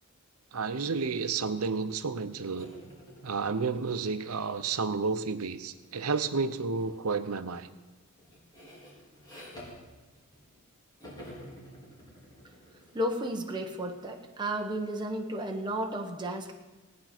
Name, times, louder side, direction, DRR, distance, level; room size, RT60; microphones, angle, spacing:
voice 1, 0.5-2.7 3.2-7.7, right 4 dB, 90° right, 11 dB, 0.8 m, -31 dB
sound 1, 2.6-5.9 6.8-7.1 7.4-10.7 11.0-14.5, equal, 20° left, 4.5 m, -51 dB
voice 2, 12.9-16.5, right 1 dB, 20° right, 2 dB, 1.2 m, -33 dB
18.0 x 9.4 x 6.0 m, 1.2 s
head